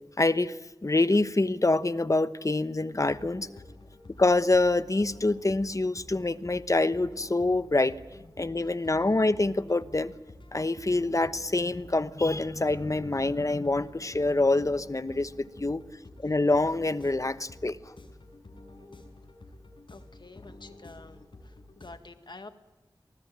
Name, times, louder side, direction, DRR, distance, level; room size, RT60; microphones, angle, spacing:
voice 1, 0.2-0.5 0.8-3.5 4.2-7.9 8.4-10.1 10.5-15.8 16.2-17.8, left 2 dB, 40° left, 13 dB, 1.1 m, -26 dB
sound 1, 2.9-21.9, left 2 dB, 80° left, 5.2 m, -50 dB
voice 2, 19.9-22.5, left 3 dB, 65° left, 8 dB, 2.0 m, -48 dB
28.0 x 19.5 x 9.0 m, 1.0 s
wide cardioid pair, 60°, 8 cm